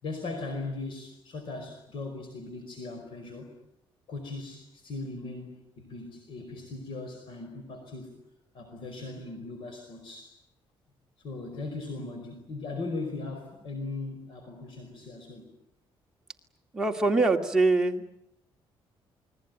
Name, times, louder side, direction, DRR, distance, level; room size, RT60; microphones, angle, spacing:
voice 1, 0.0-3.5 4.1-8.1 8.5-10.4 11.2-15.5, left 3 dB, 60° left, 6 dB, 5.0 m, -38 dB
voice 2, 16.7-18.1, right 3 dB, 5° right, 1 dB, 2.3 m, -24 dB
28.5 x 21.0 x 9.3 m, 0.78 s
cardioid pair, 160°, 10 cm